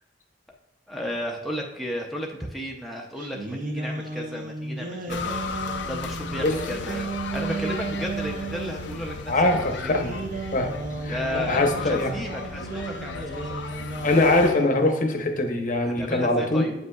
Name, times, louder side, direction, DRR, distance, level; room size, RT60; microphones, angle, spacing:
voice 1, 0.9-5.6 5.9-9.9 11.1-13.6 15.8-16.7, equal, ahead, -1 dB, 0.5 m, -34 dB
sound 1, 3.2-9.0 9.8-14.8, right 3 dB, 45° right, 0.6 m, -34 dB
sound 2, 5.1-14.5, left 5 dB, 75° left, 0.5 m, -35 dB
voice 2, 9.3-10.1 10.5-10.7 11.0-12.1 14.0-16.7, left 2 dB, 45° left, 4 dB, 0.8 m, -22 dB
7.9 x 5.3 x 2.3 m, 0.97 s
head